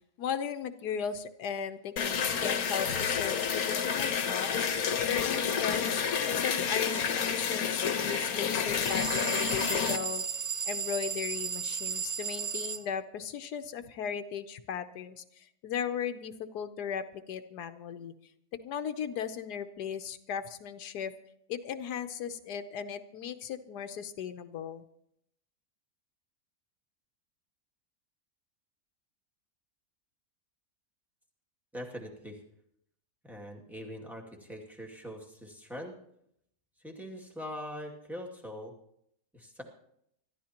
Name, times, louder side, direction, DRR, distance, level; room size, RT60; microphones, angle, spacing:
voice 1, 0.0-4.7 5.1-6.0 6.3-10.2 10.7-18.1 18.6-21.1 21.5-24.8, left 8 dB, 85° left, 9 dB, 1.3 m, -37 dB
sound 1, 2.0-10.0, left 7 dB, 70° left, 1.4 m, -29 dB
sound 2, 8.8-12.8, right 6 dB, 40° right, 0.8 m, -34 dB
voice 2, 31.7-32.4 33.2-36.0 36.8-38.7 39.3-39.6, equal, ahead, -1 dB, 2.1 m, -42 dB
25.5 x 13.5 x 2.9 m, 0.73 s
omnidirectional pair, 1.7 m